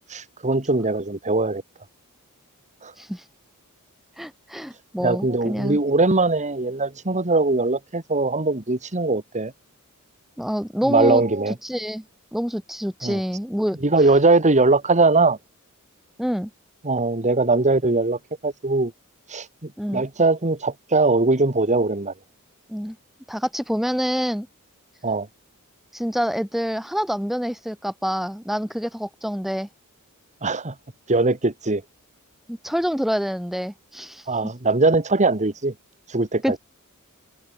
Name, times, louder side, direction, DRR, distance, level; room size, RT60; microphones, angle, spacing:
voice 1, 0.1-1.6 2.8-2.9 5.0-9.5 10.9-11.5 13.0-13.2 13.8-15.4 16.8-18.9 19.3-22.1 25.0-25.3 30.4-30.7 31.1-31.8 34.3-35.7 36.1-36.4, right 3 dB, 35° right, 1.9 m, -21 dB
voice 2, 4.2-5.8 10.4-12.0 12.3-13.8 16.2-16.5 19.8-20.0 22.7-23.0 23.3-24.5 25.9-29.7 32.5-34.3 36.4-36.6, equal, ahead, 1.3 m, -27 dB
head